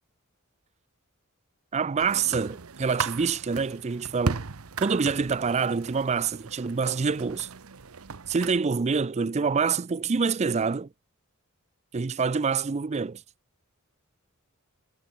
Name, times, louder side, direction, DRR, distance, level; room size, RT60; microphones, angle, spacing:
voice 1, 1.7-4.4 4.8-7.5 8.3-10.9 11.9-13.2, right 5 dB, 30° right, 0.4 m, -26 dB
sound 1, 2.0-8.6, right 4 dB, 90° right, 0.9 m, -36 dB
head